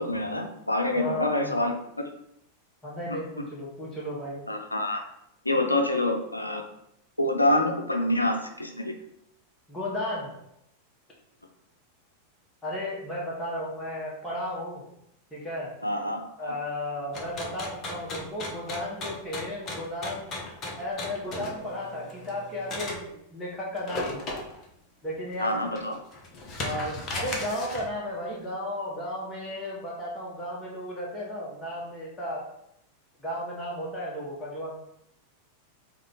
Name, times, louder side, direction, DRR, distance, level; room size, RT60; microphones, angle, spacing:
voice 1, 0.0-1.7 3.1-3.2 4.5-5.0 5.4-6.7 7.2-8.9 15.8-16.5 25.4-25.9, left 1 dB, 85° left, 4 dB, 0.6 m, -26 dB
voice 2, 0.9-1.6 2.8-4.4 9.7-10.4 12.6-14.8 15.3-15.7 16.4-20.3 20.8-24.4 25.0-25.7 26.6-32.4 33.2-34.8, left 1 dB, 10° left, -6 dB, 1.3 m, -34 dB
sound 1, 17.1-23.0 23.8-24.6 25.1-25.2 25.7-27.9, left 2 dB, 30° left, 1.0 m, -36 dB
5.0 x 2.3 x 3.8 m, 0.76 s
figure-of-eight pair, 90°, 0 cm